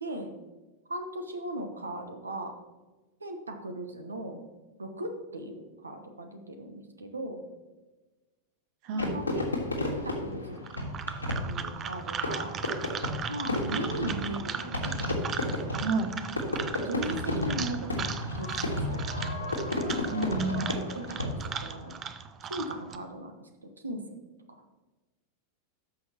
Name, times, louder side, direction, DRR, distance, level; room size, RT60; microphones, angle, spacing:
voice 1, 0.9-2.6 3.2-4.4 4.8-7.4 8.9-9.5 9.8-10.6 11.5-12.6 13.3-14.9 16.8-19.3 20.5-20.7 20.9-21.9 22.5-23.5 23.8-24.0, right 1 dB, 75° right, 6 dB, 1.0 m, -38 dB
voice 2, 8.8-9.2 15.8-16.1 20.1-20.9, right 2 dB, 45° right, 8 dB, 0.9 m, -30 dB
Fireworks, 9.0-21.7, left 1 dB, 85° left, 1.8 m, -33 dB
sound 1, 10.6-23.0, right 7 dB, 25° right, 0.6 m, -38 dB
13.5 x 6.3 x 2.9 m, 1.2 s
figure-of-eight pair, 90°, 0 cm